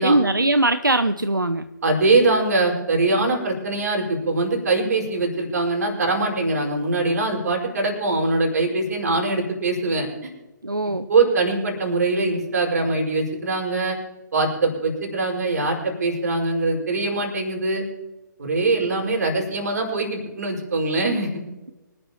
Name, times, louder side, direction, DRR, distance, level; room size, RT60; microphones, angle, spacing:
voice 1, 0.0-1.6 10.6-11.1, right 2 dB, 90° right, 11 dB, 0.7 m, -20 dB
voice 2, 1.8-10.3 11.1-14.0 14.3-17.8 18.4-21.4, right 3 dB, 55° right, 0 dB, 5.3 m, -22 dB
25.5 x 12.0 x 3.0 m, 1.1 s
figure-of-eight pair, 130°, 11 cm